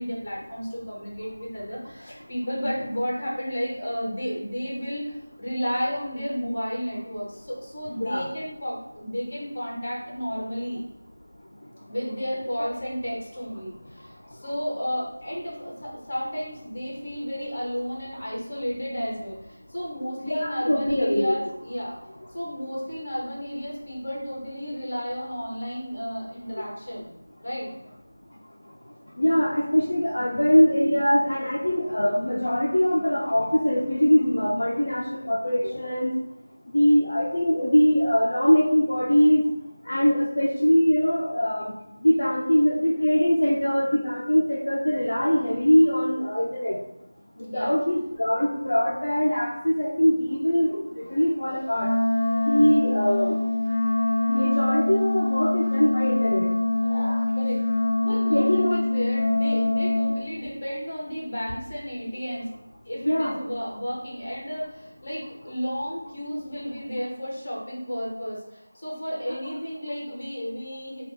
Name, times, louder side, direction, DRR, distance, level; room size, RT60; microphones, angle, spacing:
voice 1, 0.0-5.1 5.4-10.8 11.9-22.0 22.3-27.1 27.4-27.7 47.4-47.7 54.2-54.5 56.7-57.6 58.0-62.5 62.8-71.0, equal, 20° left, -4 dB, 0.8 m, -32 dB
voice 2, 20.2-21.3 29.2-36.1 36.7-39.4 39.9-41.7 42.0-46.8 47.5-51.9 52.5-53.4 54.3-56.5 58.3-58.8 63.0-63.4, equal, 45° left, -4 dB, 0.5 m, -22 dB
Wind instrument woodwind instrument, 51.7-60.2, left 2 dB, 5° left, 1.1 m, -24 dB
3.5 x 2.3 x 3.7 m, 0.88 s
figure-of-eight pair, 180°, 0 cm